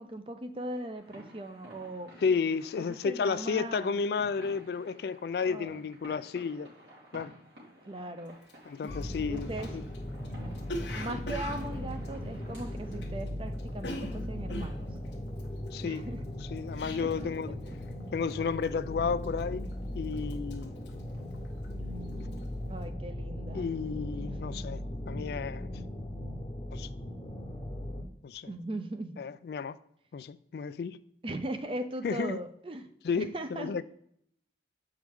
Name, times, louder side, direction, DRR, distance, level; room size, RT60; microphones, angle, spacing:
voice 1, 0.0-2.1 2.8-4.0 5.4-5.8 7.9-8.4 9.3-9.7 10.9-14.9 15.8-16.3 17.0-17.3 17.7-17.8 22.7-23.7 28.5-29.2 31.2-32.9 33.2-33.7, right 1 dB, 30° right, 0.5 m, -39 dB
sound 1, 0.9-13.1, right 1 dB, 80° right, 2.6 m, -53 dB
voice 2, 2.2-6.7 7.1-7.3 8.7-9.8 15.7-16.1 16.5-17.6 18.1-19.7 19.9-20.7 23.5-24.8 25.1-25.7 26.7-26.9 28.2-28.5 29.2-29.8 30.1-31.0 32.0-32.4 33.0-33.8, left 5 dB, 65° left, 0.3 m, -32 dB
Cough, 8.4-8.5 8.8-13.3 13.5-17.4 17.7-18.0 18.3-18.8 19.2-19.8 20.1-21.8 22.1-22.4, left 1 dB, 80° left, 0.9 m, -42 dB
sound 2, 8.9-28.0, left 1 dB, 30° left, 0.8 m, -38 dB
7.6 x 4.7 x 3.5 m
head